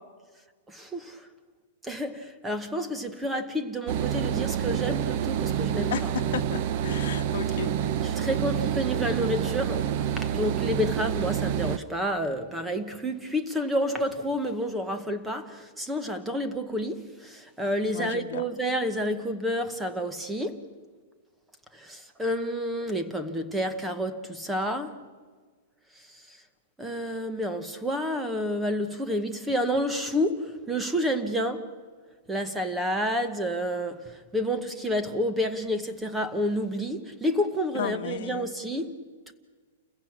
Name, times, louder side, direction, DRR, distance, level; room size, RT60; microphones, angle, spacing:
voice 1, 0.7-1.3 1.8-6.3 8.0-20.7 21.7-25.0 26.0-26.4 26.8-31.7 32.3-39.3, equal, 5° right, 1.0 m, -30 dB
sound 1, 3.9-11.8, right 9 dB, 35° right, 0.6 m, -28 dB
voice 2, 6.3-7.7 17.9-18.4 37.7-38.5, left 10 dB, 55° left, 1.3 m, -34 dB
28.5 x 15.5 x 8.5 m
supercardioid pair, 175°, 0 cm